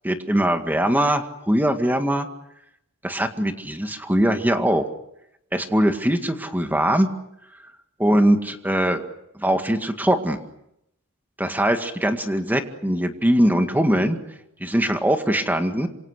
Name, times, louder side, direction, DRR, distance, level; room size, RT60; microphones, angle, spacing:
voice 1, 0.0-2.3 3.0-4.8 5.5-7.1 8.0-9.0 9.4-10.4 11.4-14.2 14.6-15.9, right 1 dB, 10° right, 6 dB, 2.0 m, -21 dB
27.5 x 26.5 x 6.6 m, 0.79 s
head